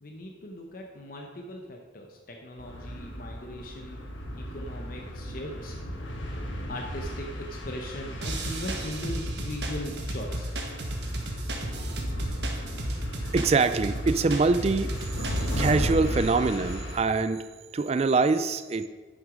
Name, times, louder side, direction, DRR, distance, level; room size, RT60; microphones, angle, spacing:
voice 1, 0.0-4.0 4.3-5.7 6.7-10.5, left 1 dB, 50° left, 1 dB, 0.8 m, -39 dB
sound 1, 2.6-17.0, equal, 85° left, 1.5 m, -35 dB
sound 2, 8.2-15.7, right 1 dB, 60° right, 1.4 m, -34 dB
voice 2, 13.3-14.9 15.4-18.9, right 4 dB, 35° right, 12 dB, 0.3 m, -24 dB
10.5 x 6.2 x 5.1 m, 1.4 s
head